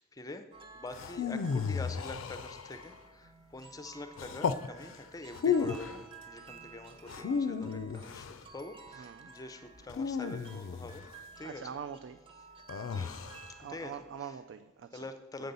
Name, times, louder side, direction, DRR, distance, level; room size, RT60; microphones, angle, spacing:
voice 1, 0.0-8.3 8.5-11.1 11.4-11.7 12.8-13.2 13.6-14.0 14.9-15.5, left 2 dB, 20° left, 8 dB, 0.5 m, -45 dB
sound 1, 0.5-14.2, right 4 dB, 25° right, 0.7 m, -53 dB
sound 2, 0.9-2.9 4.2-4.7 5.3-6.0 7.1-8.4 9.9-11.1 12.7-13.5, left 6 dB, 85° left, 0.4 m, -33 dB
voice 2, 9.0-9.3 11.4-12.2 13.6-15.1 15.4-15.5, right 7 dB, 70° right, 10 dB, 0.3 m, -44 dB
7.9 x 3.9 x 6.8 m, 1.2 s
head